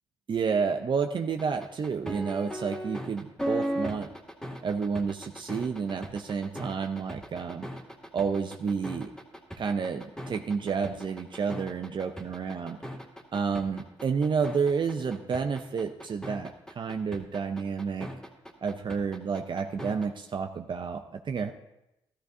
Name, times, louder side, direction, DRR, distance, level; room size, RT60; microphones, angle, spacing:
voice 1, 0.3-4.1 4.6-7.7 8.1-9.1 9.6-12.8 13.3-18.1 18.6-21.5, right 5 dB, 50° right, 6 dB, 0.6 m, -30 dB
sound 1, 1.4-20.1, equal, 5° left, 2.2 m, -37 dB
13.5 x 13.0 x 2.7 m, 0.90 s
supercardioid pair, 55°, 10 cm